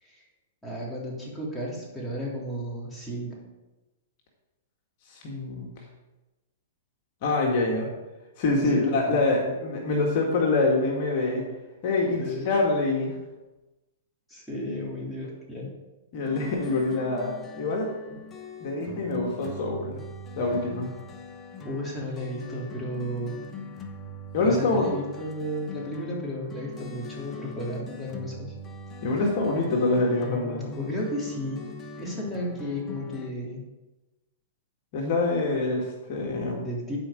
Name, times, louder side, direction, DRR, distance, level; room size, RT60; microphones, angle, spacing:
voice 1, 0.6-3.4 8.6-9.5 12.2-12.5 14.3-15.7 18.1-18.2 21.6-23.4 24.4-28.5 30.8-31.7 32.0-33.6 36.6-37.0, equal, 5° left, -6 dB, 3.3 m, -34 dB
voice 2, 5.1-5.7 7.2-7.9 8.4-11.5 11.8-13.2 16.1-17.9 18.6-20.0 20.4-20.9 24.3-24.9 29.0-30.7 34.9-36.7, left 3 dB, 50° left, -1 dB, 1.9 m, -25 dB
sound 1, 16.2-33.3, left 2 dB, 25° left, 1.1 m, -41 dB
11.5 x 4.9 x 5.1 m, 1.1 s
hypercardioid pair, 120°, 0 cm